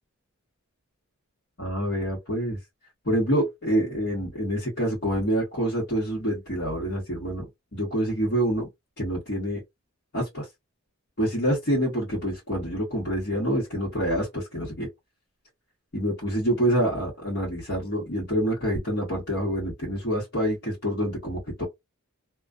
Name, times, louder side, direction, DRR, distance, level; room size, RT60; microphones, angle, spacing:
voice 1, 1.6-2.6 3.0-7.4 7.7-8.7 9.0-9.6 10.1-10.5 11.2-14.9 15.9-21.6, equal, 55° left, 1.2 m, -26 dB
2.4 x 2.3 x 2.4 m
head